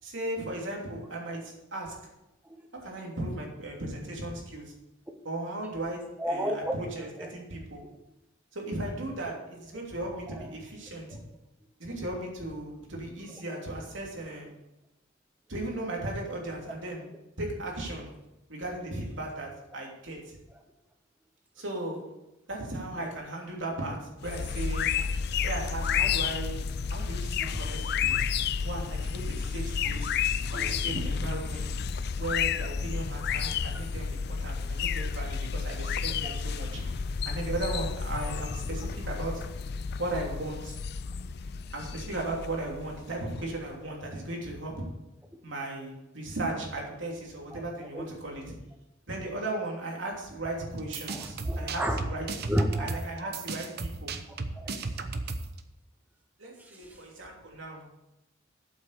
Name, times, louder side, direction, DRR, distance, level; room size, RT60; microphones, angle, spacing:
voice 1, 0.0-1.9 2.8-4.7 5.2-7.8 8.5-11.2 11.8-14.5 15.5-17.1 17.4-18.1 18.5-20.4 21.6-22.0 22.5-24.9 25.4-26.6 26.9-28.3 28.6-30.2 30.5-31.8 32.1-39.4 40.0-40.8 41.7-44.8 45.4-48.4 49.1-52.3 52.8-54.1 56.4-57.8, right 1 dB, 75° right, -1 dB, 3.1 m, -36 dB
voice 2, 6.2-7.3 7.8-7.9 10.3-10.5 23.0-23.1 27.4-27.7 30.5-30.7 36.2-36.4 47.5-48.1 51.1-52.1 52.5-53.0 54.3-54.8 56.6-57.0, equal, 10° right, 3 dB, 0.8 m, -33 dB
sound 1, 24.2-43.6, left 6 dB, 55° left, 0.4 m, -31 dB
sound 2, 50.8-55.6, right 3 dB, 55° right, 0.9 m, -35 dB
8.7 x 7.9 x 6.6 m, 0.93 s
head